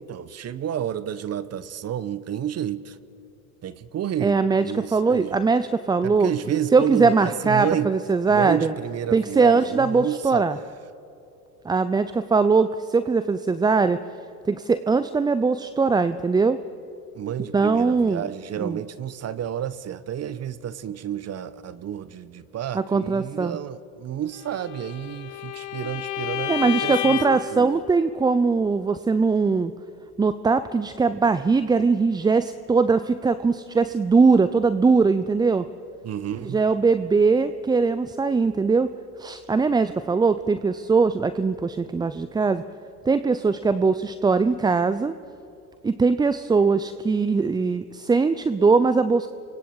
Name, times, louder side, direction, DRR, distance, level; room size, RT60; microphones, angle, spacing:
voice 1, 0.0-3.0 3.6-5.4 6.0-7.9 8.3-10.4 17.1-27.8 36.0-36.6, right 10 dB, 35° right, 16 dB, 1.0 m, -30 dB
voice 2, 4.2-6.3 6.7-8.7 9.1-10.6 11.6-14.0 14.5-16.6 17.5-18.2 18.6-18.8 22.7-23.6 26.5-29.7 30.2-35.7 36.4-38.9 39.2-42.6 43.1-45.1 45.8-49.3, right 4 dB, 10° right, 12 dB, 0.5 m, -21 dB
Bowed string instrument, 24.5-27.5, left 13 dB, 55° left, 2.1 m, -30 dB
29.0 x 24.5 x 4.8 m, 2.8 s
hypercardioid pair, 90°, 46 cm